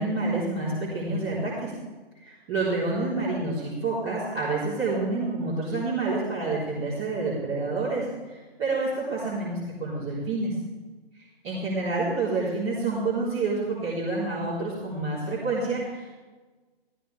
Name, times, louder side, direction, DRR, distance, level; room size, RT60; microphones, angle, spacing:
voice 1, 0.0-1.7 2.2-10.5 11.4-16.1, right 3 dB, 25° right, -10 dB, 3.9 m, -28 dB
14.5 x 14.5 x 3.5 m, 1.3 s
hypercardioid pair, 155°, 31 cm